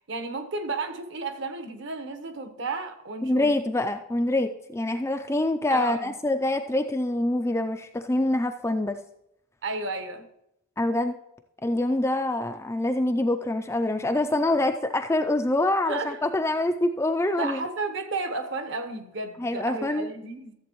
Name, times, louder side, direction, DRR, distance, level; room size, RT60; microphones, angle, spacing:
voice 1, 0.1-3.5 5.7-6.1 9.6-10.3 15.9-16.2 17.4-20.5, right 3 dB, 55° right, 7 dB, 1.0 m, -32 dB
voice 2, 3.2-9.0 10.8-11.2 11.6-17.6 19.4-20.1, left 1 dB, 10° left, 6 dB, 0.3 m, -25 dB
14.0 x 7.6 x 3.0 m, 0.81 s
head